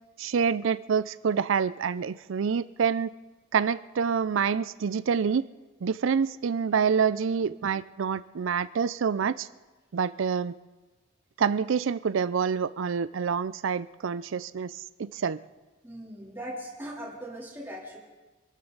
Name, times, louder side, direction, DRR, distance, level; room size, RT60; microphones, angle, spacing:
voice 1, 0.2-3.1 3.5-5.5 5.8-9.5 9.9-10.5 11.4-15.4, right 6 dB, 70° right, 16 dB, 0.4 m, -27 dB
voice 2, 15.8-18.0, equal, 10° right, -4 dB, 3.3 m, -39 dB
26.0 x 13.0 x 4.0 m, 1.2 s
head